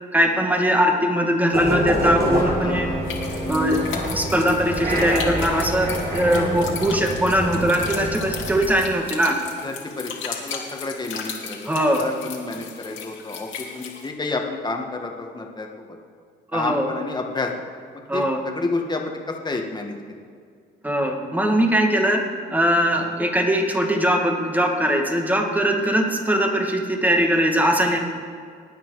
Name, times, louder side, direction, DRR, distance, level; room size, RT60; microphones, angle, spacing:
voice 1, 0.1-2.9 3.5-3.8 4.1-9.4 11.6-12.1 16.5-16.9 18.1-18.4 20.8-22.2 22.5-28.0, equal, 10° right, 2 dB, 1.9 m, -21 dB
sound 1, 1.5-8.6, equal, 50° right, 3.3 m, -26 dB
voice 2, 2.6-3.0 9.6-11.6 12.0-15.7 16.5-17.5 18.1-19.2 19.4-19.9 22.9-23.1, left 3 dB, 20° left, 2 dB, 1.7 m, -30 dB
sound 2, 3.0-14.1, left 6 dB, 75° left, 2.3 m, -36 dB
20.0 x 9.2 x 4.9 m, 2.2 s
cardioid pair, 90°, 20 cm